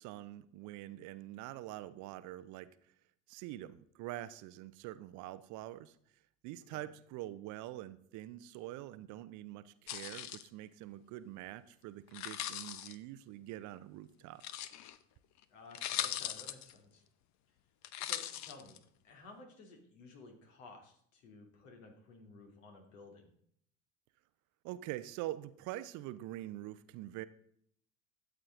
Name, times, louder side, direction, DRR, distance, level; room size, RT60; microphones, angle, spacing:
voice 1, 0.0-2.7 3.3-5.9 6.4-14.4 24.6-27.2, right 15 dB, 45° right, 15 dB, 0.7 m, -45 dB
sound 1, 9.9-10.5 12.1-12.9 14.4-15.0 15.4-15.5 15.7-16.7 17.8-18.8, left 12 dB, 45° left, 0.8 m, -40 dB
voice 2, 15.5-17.0 18.0-23.3, left 3 dB, 70° left, 3 dB, 2.8 m, -55 dB
13.0 x 7.8 x 3.7 m, 0.66 s
figure-of-eight pair, 70°, 40 cm